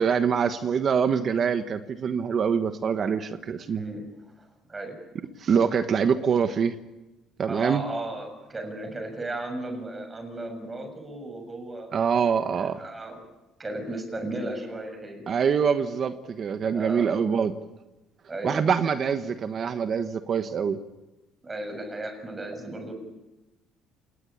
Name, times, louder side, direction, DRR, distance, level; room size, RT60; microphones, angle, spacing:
voice 1, 0.0-3.8 5.4-6.7 7.4-7.8 11.9-12.8 15.3-17.5 18.4-20.8, right 6 dB, 40° right, 9 dB, 1.3 m, -24 dB
voice 2, 3.7-4.0 4.4-4.9 7.5-12.0 12.6-13.2 13.6-15.2 16.7-17.2 18.3-18.6 21.4-22.9, right 2 dB, 20° right, 6 dB, 6.5 m, -35 dB
27.5 x 20.0 x 8.8 m, 1.1 s
cardioid pair, 125°, 0 cm